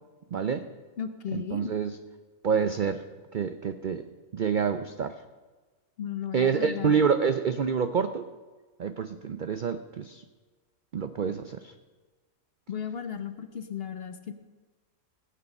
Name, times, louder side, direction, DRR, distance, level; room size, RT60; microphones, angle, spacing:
voice 1, 0.3-0.6 1.3-2.0 2.4-3.0 3.3-4.0 4.3-5.1 6.3-8.3 8.8-10.2 10.9-11.7, right 6 dB, 65° right, 9 dB, 0.5 m, -27 dB
voice 2, 1.0-1.7 6.0-7.0 12.7-14.3, left 8 dB, 50° left, 9 dB, 0.8 m, -35 dB
16.0 x 8.5 x 5.3 m, 1.3 s
omnidirectional pair, 1.5 m